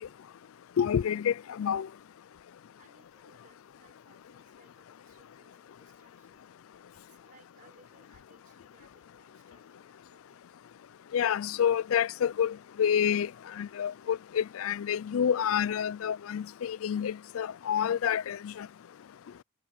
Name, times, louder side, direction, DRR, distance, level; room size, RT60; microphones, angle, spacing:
voice 1, 0.8-1.9 11.1-13.3 13.6-18.7, left 8 dB, 80° left, 0.4 m, -28 dB
voice 2, 2.8-6.4 6.9-10.6, right 3 dB, 40° right, 5.5 m, -64 dB
head